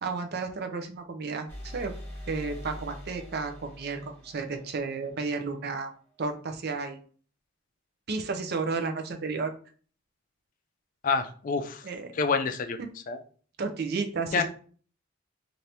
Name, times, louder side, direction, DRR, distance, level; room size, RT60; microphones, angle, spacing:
voice 1, 0.0-1.9 2.3-5.9 6.2-7.0 8.1-9.5 11.8-12.1 12.8-12.9 13.6-14.4, right 4 dB, 55° right, 6 dB, 0.5 m, -32 dB
sound 1, 1.5-5.2, equal, 15° left, 1.0 m, -43 dB
voice 2, 11.0-11.8 12.2-12.8 13.1-13.2 14.3-14.4, left 5 dB, 40° left, 7 dB, 0.3 m, -27 dB
2.8 x 2.6 x 3.2 m, 0.43 s
head